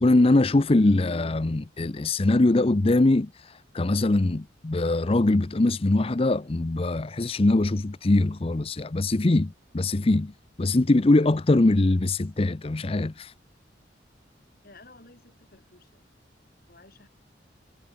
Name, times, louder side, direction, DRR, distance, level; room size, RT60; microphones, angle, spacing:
voice 1, 0.0-13.3, left 2 dB, 30° left, 0.6 m, -22 dB
voice 2, 14.6-16.1 16.7-17.1, left 2 dB, 55° left, 7.1 m, -53 dB
head